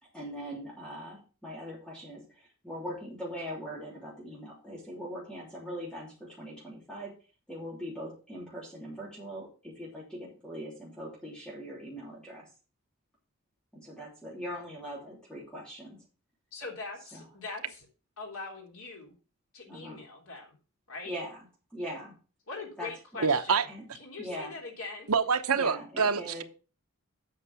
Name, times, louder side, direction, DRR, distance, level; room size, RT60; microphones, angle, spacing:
voice 1, 0.0-7.1 7.5-12.4 13.7-16.0 17.1-17.2 19.7-20.0 21.0-21.4 21.7-22.1 22.8-23.2 23.7-23.8 24.2-24.5 25.5-26.4, equal, 5° left, 3.2 m, -41 dB
voice 2, 16.5-17.8 18.2-19.1 19.5-20.5 20.9-21.1 22.5-23.6 24.0-25.1 26.0-26.1, left 3 dB, 75° left, 3.6 m, -42 dB
voice 3, 23.2-23.6 25.1-26.4, right 5 dB, 85° right, 0.9 m, -26 dB
8.5 x 6.2 x 6.1 m
head